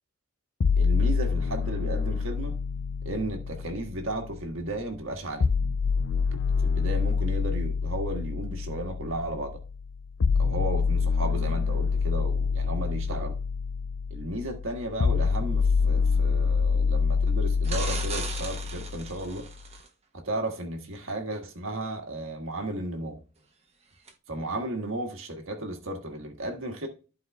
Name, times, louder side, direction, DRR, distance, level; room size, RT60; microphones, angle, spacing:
sound 1, 0.6-4.6 5.4-19.4, left 5 dB, 70° left, 0.5 m, -27 dB
voice 1, 0.8-2.6 3.0-5.5 6.6-9.6 10.4-13.3 14.1-19.5 20.1-23.2 24.3-26.9, right 1 dB, 75° right, 1.5 m, -34 dB
sound 2, 17.6-19.9 24.1-24.2, right 4 dB, 30° right, 1.1 m, -37 dB
14.5 x 4.8 x 2.3 m
head